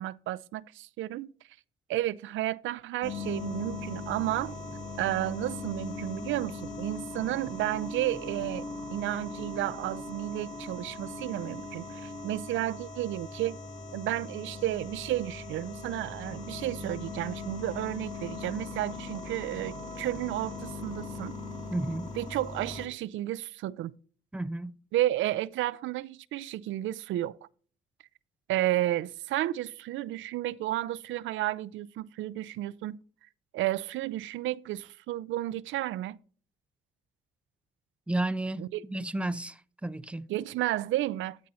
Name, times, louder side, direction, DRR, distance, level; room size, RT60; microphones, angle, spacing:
voice 1, 0.0-1.3 1.9-4.5 5.0-8.6 8.9-13.6 13.9-21.3 22.2-23.9 24.9-27.4 28.5-33.0 33.5-36.2 38.6-38.8 40.3-41.4, right 14 dB, 80° right, 0.4 m, -32 dB
sound 1, 3.0-22.9, left 3 dB, 40° left, 2.4 m, -40 dB
voice 2, 21.7-22.1 24.3-24.8 38.1-40.3, right 2 dB, 5° right, 0.4 m, -32 dB
12.5 x 4.2 x 4.1 m
cardioid pair, 90°, 20 cm